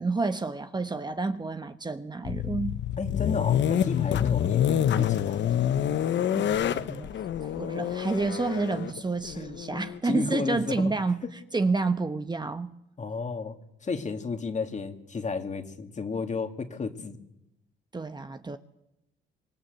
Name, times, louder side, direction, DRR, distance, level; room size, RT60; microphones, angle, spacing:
voice 1, 0.0-2.8 6.4-11.3 11.5-12.7 17.9-18.6, right 3 dB, 20° right, 1.1 m, -29 dB
sound 1, 2.2-10.0, left 10 dB, 65° left, 1.0 m, -27 dB
voice 2, 3.0-5.4 10.0-10.9 13.0-17.2, left 4 dB, 35° left, 2.5 m, -33 dB
25.5 x 19.5 x 8.1 m
cardioid pair, 90°, 20 cm